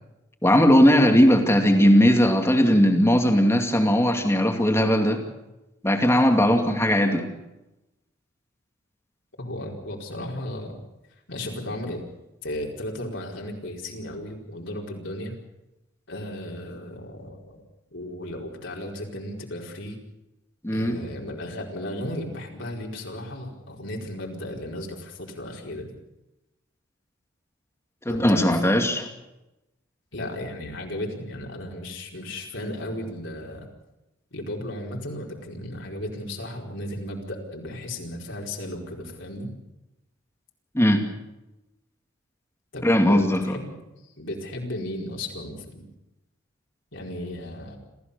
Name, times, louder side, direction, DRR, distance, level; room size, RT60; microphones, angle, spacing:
voice 1, 0.4-5.2 5.8-7.3 20.6-21.0 28.1-29.1 40.7-41.1 42.8-43.6, equal, 15° left, 4 dB, 2.5 m, -19 dB
voice 2, 9.4-10.8 11.3-12.0 12.4-15.3 16.1-17.6 17.9-20.0 20.7-25.9 28.0-28.6 30.1-33.7 34.3-39.5 42.7-43.7 44.2-45.9 46.9-47.8, left 1 dB, 70° left, -1 dB, 4.6 m, -35 dB
26.5 x 15.5 x 6.9 m, 0.97 s
head